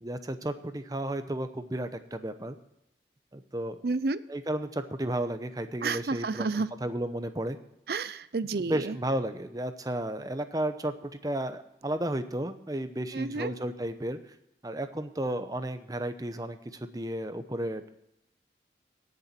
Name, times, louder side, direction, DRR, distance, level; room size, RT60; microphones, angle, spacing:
voice 1, 0.0-2.6 3.3-3.8 4.3-7.6 8.7-14.2 14.6-17.9, right 1 dB, 20° right, 10 dB, 0.8 m, -33 dB
voice 2, 3.8-4.2 5.8-6.7 7.9-9.0 13.1-13.5, right 3 dB, 60° right, 16 dB, 0.5 m, -30 dB
17.5 x 6.9 x 4.4 m, 0.84 s
head